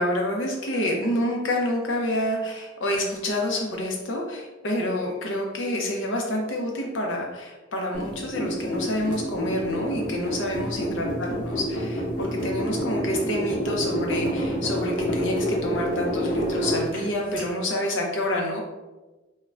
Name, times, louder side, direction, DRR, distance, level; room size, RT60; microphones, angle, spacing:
voice 1, 0.0-18.6, left 1 dB, 65° left, 0 dB, 0.6 m, -28 dB
sound 1, 7.9-17.4, equal, 40° left, 0.9 m, -28 dB
2.4 x 2.1 x 3.2 m, 1.1 s
head